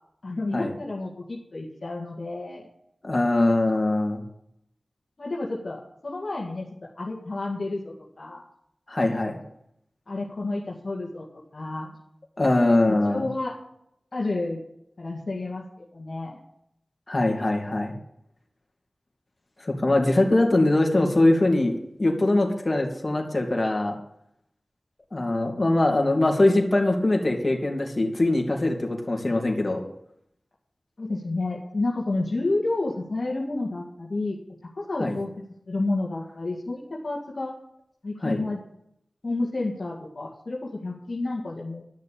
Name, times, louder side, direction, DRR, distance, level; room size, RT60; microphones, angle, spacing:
voice 1, 0.2-2.7 5.2-8.4 10.1-11.3 11.5-11.9 12.9-13.6 14.1-14.6 15.0-16.4 31.0-34.4 34.8-35.3 35.7-37.6 38.0-38.6 39.2-41.8, left 2 dB, 60° left, -2 dB, 2.0 m, -30 dB
voice 2, 3.0-4.2 8.9-9.4 12.4-13.2 17.1-17.9 19.6-21.7 22.0-23.9 25.1-29.8 35.0-35.1 38.2-38.4, left 2 dB, 40° left, 1 dB, 2.8 m, -22 dB
12.0 x 6.6 x 8.7 m, 0.76 s
wide cardioid pair, 50°, 0 cm